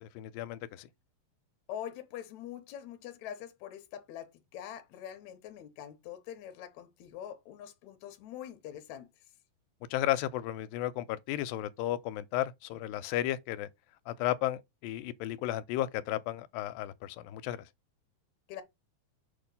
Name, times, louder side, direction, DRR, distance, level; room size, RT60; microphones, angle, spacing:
voice 1, 0.0-0.9 9.9-13.7 14.1-17.7, left 13 dB, 85° left, 2.3 m, -34 dB
voice 2, 1.7-9.1 18.5-18.6, left 10 dB, 70° left, 1.9 m, -44 dB
6.5 x 2.9 x 5.3 m
omnidirectional pair, 4.1 m